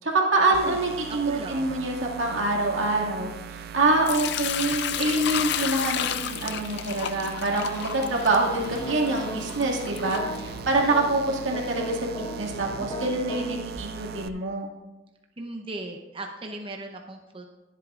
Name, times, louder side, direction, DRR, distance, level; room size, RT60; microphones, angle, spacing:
voice 1, 0.0-14.7, right 2 dB, 85° right, -1 dB, 2.2 m, -25 dB
sound 1, 0.5-14.3, right 7 dB, 55° right, 0.4 m, -40 dB
voice 2, 1.1-1.9 15.4-17.5, right 2 dB, 30° right, 2 dB, 0.8 m, -37 dB
Sink (filling or washing) / Liquid, 4.1-11.0, left 10 dB, 60° left, 0.4 m, -32 dB
sound 2, 8.5-9.4 10.0-13.4, left 1 dB, 30° left, 1.1 m, -37 dB
21.0 x 8.2 x 2.5 m, 1.1 s
head